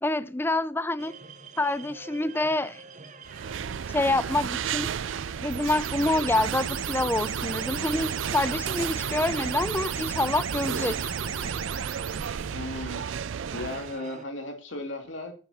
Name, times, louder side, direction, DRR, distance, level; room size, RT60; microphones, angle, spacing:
voice 1, 0.0-1.1 1.6-2.8 3.9-4.9 5.4-11.0 11.4-11.5, left 2 dB, 10° left, 0.6 m, -27 dB
sound 1, 1.0-14.2, right 4 dB, 40° right, 1.1 m, -46 dB
sound 2, 3.3-14.0, right 7 dB, 70° right, 0.4 m, -34 dB
sound 3, 5.5-12.3, right 7 dB, 90° right, 1.0 m, -34 dB
voice 2, 12.5-13.2 13.5-15.3, left 2 dB, 65° left, 2.6 m, -36 dB
12.0 x 8.9 x 4.3 m
head